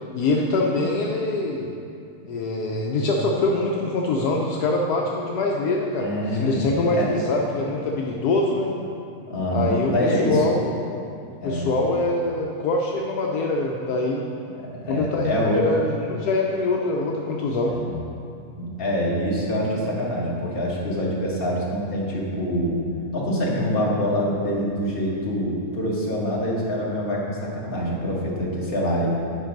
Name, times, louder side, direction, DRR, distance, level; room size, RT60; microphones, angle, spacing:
voice 1, 0.1-1.7 2.3-8.7 9.5-10.6 11.4-14.3 14.9-17.7, left 2 dB, 75° left, -1 dB, 1.2 m, -24 dB
voice 2, 6.0-7.1 9.3-10.4 11.4-11.7 14.5-15.6 17.6-17.9 18.6-22.8 23.1-29.1, equal, 35° left, -5 dB, 1.6 m, -25 dB
9.1 x 5.4 x 5.2 m, 2.5 s
omnidirectional pair, 1.8 m